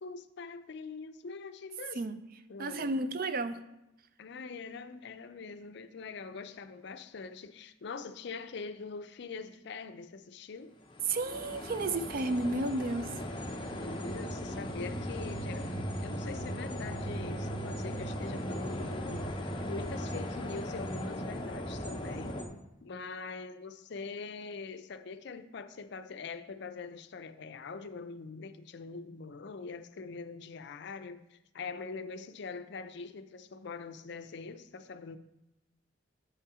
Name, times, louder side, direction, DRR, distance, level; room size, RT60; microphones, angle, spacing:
voice 1, 0.0-2.0 2.5-2.9 4.2-10.7 13.5-15.7 16.0-19.2 19.6-35.2, left 4 dB, 60° left, 0.5 m, -43 dB
voice 2, 2.6-3.6 11.1-13.1, right 2 dB, 50° right, 0.4 m, -32 dB
sound 1, 10.9-22.4, equal, 25° left, 0.7 m, -37 dB
6.9 x 5.6 x 4.9 m
head